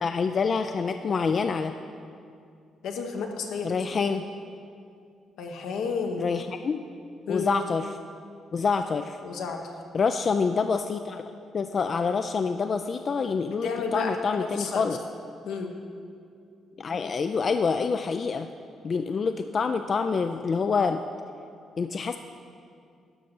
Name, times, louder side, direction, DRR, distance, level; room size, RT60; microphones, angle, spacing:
voice 1, 0.0-1.7 3.6-4.2 6.2-6.8 7.3-7.9 8.5-9.2 9.9-11.2 11.5-15.0 16.8-18.5 18.8-21.0 21.8-22.2, left 5 dB, 45° left, 8 dB, 0.3 m, -26 dB
voice 2, 2.8-3.8 5.4-6.3 7.3-7.5 9.2-9.6 13.6-14.9 15.4-15.7, left 5 dB, 80° left, 3 dB, 1.0 m, -31 dB
11.5 x 5.3 x 6.0 m, 2.4 s
cardioid pair, 90°, 0 cm